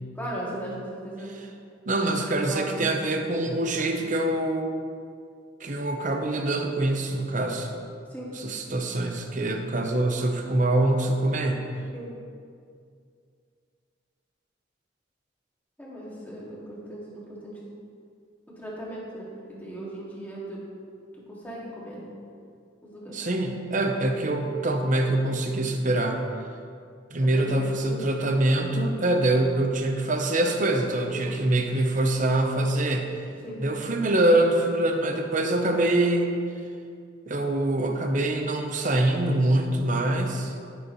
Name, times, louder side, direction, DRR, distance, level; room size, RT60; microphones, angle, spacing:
voice 1, 0.2-1.3 2.2-2.9 8.1-8.3 11.9-12.1 15.8-17.7 18.5-20.6 21.1-22.1 22.8-23.2 27.2-28.0 31.1-31.4 33.4-33.6, right 1 dB, 10° left, -6 dB, 2.1 m, -38 dB
voice 2, 1.9-4.7 5.6-7.7 8.4-11.6 23.1-26.2 27.1-33.1 33.6-36.3 37.3-40.5, right 1 dB, 40° right, 4 dB, 0.9 m, -24 dB
15.0 x 6.6 x 3.1 m, 2.3 s
head